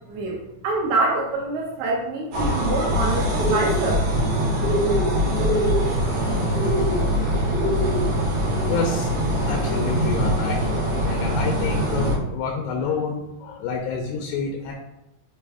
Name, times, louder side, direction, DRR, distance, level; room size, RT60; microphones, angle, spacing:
voice 1, 0.1-4.0, right 2 dB, 75° right, -3 dB, 3.2 m, -25 dB
sound 1, 2.3-12.2, equal, 55° right, 1.8 m, -23 dB
sound 2, 3.3-3.8 4.6-5.1 5.3-5.8 6.5-7.0 7.5-8.0, right 1 dB, 60° left, 1.5 m, -25 dB
voice 2, 8.7-9.1 9.5-10.6 11.0-14.7, left 5 dB, 80° left, 1 dB, 2.5 m, -28 dB
7.5 x 3.0 x 4.8 m, 0.88 s
omnidirectional pair, 5.3 m